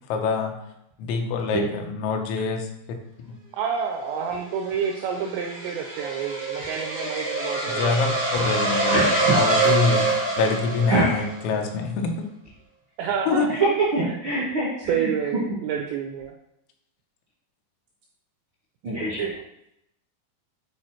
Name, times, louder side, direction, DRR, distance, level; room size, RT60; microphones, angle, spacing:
voice 1, 0.1-0.5 1.0-2.7 7.7-10.1 10.4-12.2 13.3-13.5, left 4 dB, 90° left, 3 dB, 3.7 m, -25 dB
voice 2, 3.6-8.1 13.0-13.8 14.9-16.3, right 7 dB, 90° right, 1 dB, 2.5 m, -28 dB
sound 1, 4.3-11.4, right 2 dB, 30° right, 0.5 m, -25 dB
voice 3, 8.8-9.4 10.9-11.2 13.5-15.1 18.8-19.3, right 2 dB, 70° right, -7 dB, 1.2 m, -24 dB
9.4 x 4.3 x 4.5 m, 0.79 s
omnidirectional pair, 5.8 m